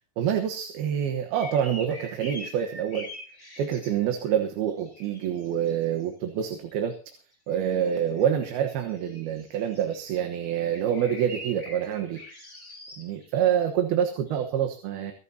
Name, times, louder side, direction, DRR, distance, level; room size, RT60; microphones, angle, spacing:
voice 1, 0.2-3.1 3.6-7.0 7.5-12.2 13.0-15.1, right 9 dB, 80° right, 4 dB, 3.2 m, -27 dB
sound 1, 1.3-4.4 4.6-6.0 6.4-7.1 7.5-13.5 14.3-14.4, left 1 dB, 10° left, 5.3 m, -45 dB
25.0 x 12.0 x 2.8 m, 0.37 s
omnidirectional pair, 4.3 m